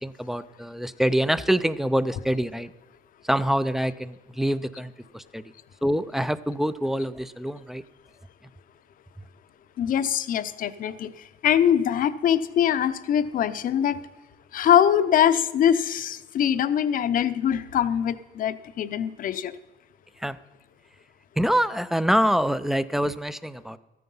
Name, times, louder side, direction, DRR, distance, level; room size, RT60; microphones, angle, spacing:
voice 1, 0.0-2.7 3.2-5.4 5.8-7.8 20.2-20.4 21.4-23.8, equal, ahead, 0.5 m, -25 dB
voice 2, 9.8-14.0 14.5-19.6, left 9 dB, 55° left, 0.7 m, -23 dB
13.5 x 9.4 x 5.5 m
cardioid pair, 110°, 17 cm